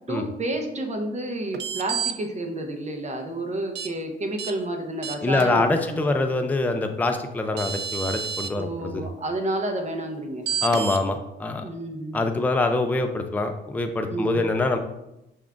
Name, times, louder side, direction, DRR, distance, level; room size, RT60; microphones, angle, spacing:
voice 1, 0.1-6.1 8.6-10.4 11.6-12.2 14.1-14.4, right 2 dB, 35° right, 4 dB, 0.9 m, -30 dB
sound 1, 1.5-2.1 3.7-3.9 4.4-4.5 5.0-5.4 7.1-7.2 7.6-8.5 10.5-11.0, right 7 dB, 60° right, 0.4 m, -29 dB
voice 2, 5.2-9.0 10.6-11.6 12.1-14.8, left 2 dB, 10° left, 6 dB, 0.4 m, -24 dB
6.1 x 3.5 x 2.5 m, 0.88 s
cardioid pair, 90°, 20 cm